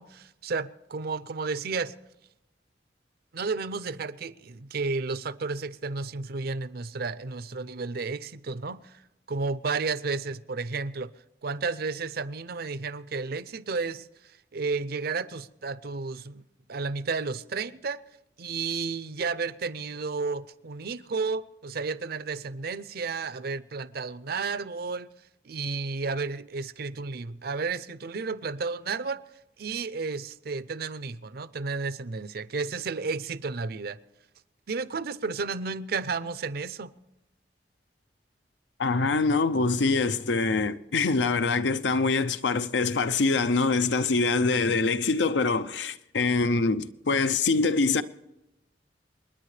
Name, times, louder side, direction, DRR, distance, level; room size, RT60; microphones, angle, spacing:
voice 1, 0.0-1.9 3.3-9.0 9.3-11.1 11.4-14.1 14.5-16.4 16.7-18.0 18.4-25.1 25.4-29.2 29.6-34.0 34.7-36.9, right 4 dB, 60° right, 0.6 m, -32 dB
voice 2, 38.8-48.0, left 3 dB, 80° left, 0.7 m, -24 dB
28.5 x 10.0 x 3.3 m
head